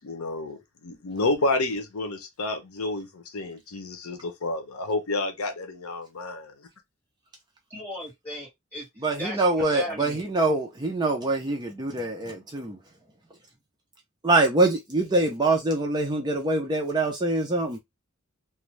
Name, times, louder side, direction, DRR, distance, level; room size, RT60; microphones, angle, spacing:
voice 1, 0.0-6.4, left 2 dB, 85° left, 0.7 m, -30 dB
voice 2, 7.7-8.9 9.2-10.2, equal, 5° left, 1.5 m, -36 dB
voice 3, 9.0-12.8 14.2-17.8, right 2 dB, 20° right, 0.4 m, -24 dB
2.5 x 2.2 x 3.1 m
head